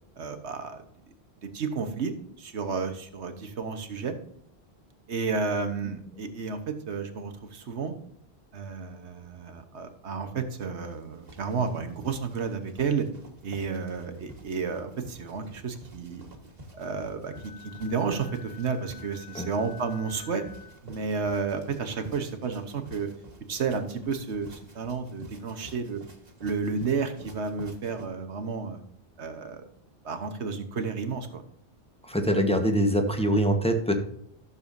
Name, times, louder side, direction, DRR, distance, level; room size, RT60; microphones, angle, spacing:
voice 1, 0.2-0.8 1.4-2.1 2.4-4.2 5.1-7.9 8.5-13.1 13.4-16.2 16.7-20.5 20.8-23.1 23.5-26.0 26.4-28.8 29.2-29.6 30.0-31.4, right 5 dB, 85° right, 8 dB, 1.4 m, -31 dB
sound 1, 10.8-28.1, right 1 dB, 40° right, 1.7 m, -50 dB
Wind instrument woodwind instrument, 17.3-20.8, left 9 dB, 75° left, 2.8 m, -49 dB
voice 2, 32.0-34.0, equal, 5° left, 4 dB, 1.2 m, -24 dB
13.5 x 6.9 x 2.7 m, 0.72 s
omnidirectional pair, 1.1 m